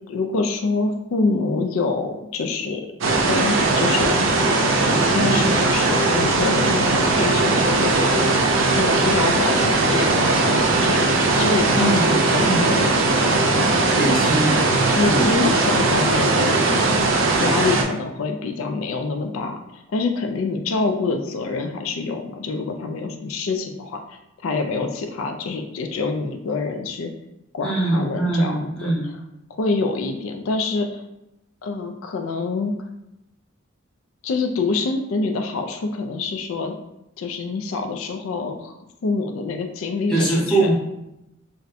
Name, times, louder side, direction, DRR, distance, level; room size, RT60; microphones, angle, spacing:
voice 1, 0.1-2.8 3.2-4.2 4.8-8.2 8.8-12.9 13.2-13.9 14.9-16.6 17.4-24.0 24.4-27.1 27.5-28.9 29.5-31.0 31.6-32.7 34.2-36.7 37.2-38.7 39.0-40.7, left 3 dB, 80° left, 4 dB, 0.4 m, -26 dB
sound 1, 3.0-17.8, right 3 dB, 70° right, 0.5 m, -19 dB
voice 2, 11.7-12.7 13.9-14.6 15.0-15.4 27.6-29.1 40.1-40.7, right 2 dB, 5° left, -6 dB, 0.8 m, -22 dB
2.5 x 2.2 x 4.0 m, 0.88 s
head